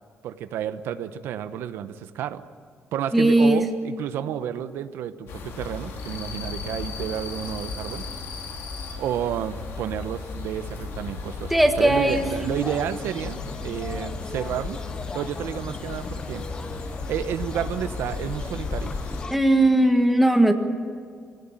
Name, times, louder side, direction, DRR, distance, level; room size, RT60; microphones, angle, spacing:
voice 1, 0.2-2.4 2.9-8.0 9.0-14.8 15.1-16.5 17.1-18.9, right 10 dB, 90° right, 10 dB, 1.0 m, -31 dB
voice 2, 3.1-3.6 11.5-12.7 19.3-20.5, right 1 dB, ahead, 4 dB, 1.6 m, -19 dB
sound 1, 5.3-19.2, left 4 dB, 85° left, 3.9 m, -36 dB
sound 2, 12.1-19.4, left 3 dB, 20° left, 0.6 m, -35 dB
25.0 x 17.5 x 9.0 m, 2.1 s
cardioid pair, 170°, 4 cm